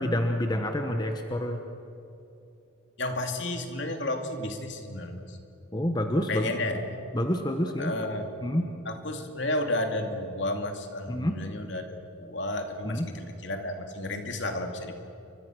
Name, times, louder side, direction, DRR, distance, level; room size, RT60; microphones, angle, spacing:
voice 1, 0.0-1.6 5.7-6.5 7.1-7.9 8.4-8.7 11.1-11.4 12.8-13.1, left 1 dB, 20° left, 5 dB, 1.2 m, -28 dB
voice 2, 3.0-5.4 6.3-6.8 7.8-8.3 8.8-14.9, left 1 dB, 60° left, 5 dB, 2.5 m, -32 dB
30.0 x 24.5 x 6.3 m, 2.7 s
head